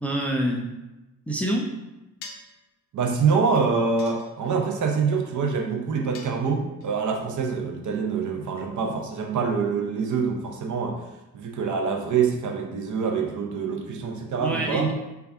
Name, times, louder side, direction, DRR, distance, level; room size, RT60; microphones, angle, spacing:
voice 1, 0.0-0.7 1.3-1.7 14.4-14.9, right 1 dB, 5° left, -1 dB, 0.4 m, -26 dB
sound 1, 2.2-2.6 4.0-4.7 6.1-6.9, left 4 dB, 70° left, 0.6 m, -44 dB
voice 2, 2.9-11.0 11.3-14.9, right 5 dB, 40° right, 3 dB, 0.7 m, -25 dB
3.4 x 2.3 x 3.4 m, 1.0 s
figure-of-eight pair, 40°, 49 cm